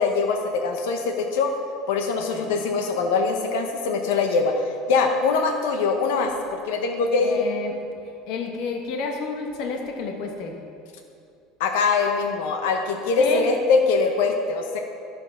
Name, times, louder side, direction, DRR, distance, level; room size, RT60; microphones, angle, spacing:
voice 1, 0.0-1.5 1.9-4.5 4.9-7.4 11.6-14.8, left 4 dB, 90° left, 4 dB, 0.9 m, -23 dB
voice 2, 7.2-7.8 8.3-10.6 13.2-13.5, left 4 dB, 55° left, 3 dB, 1.1 m, -30 dB
11.0 x 7.0 x 5.7 m, 2.5 s
cardioid pair, 165°, 0 cm